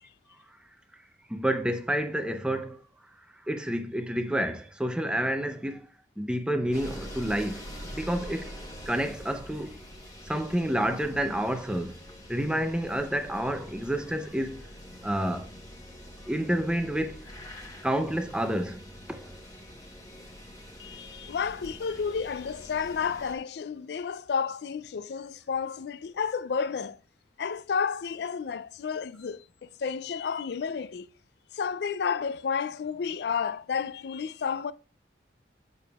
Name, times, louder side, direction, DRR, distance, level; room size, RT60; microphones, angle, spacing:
voice 1, 1.3-2.8 3.5-5.9 6.2-8.5 8.9-9.8 10.3-12.0 12.3-14.7 15.0-15.5 16.3-17.3 17.8-18.8 19.1-19.3, right 1 dB, 5° right, 0.5 m, -29 dB
sound 1, 6.7-23.3, equal, 20° left, 1.0 m, -45 dB
voice 2, 20.8-27.0 27.4-31.1 31.5-34.7, left 6 dB, 60° left, 0.3 m, -31 dB
7.0 x 6.5 x 2.3 m
head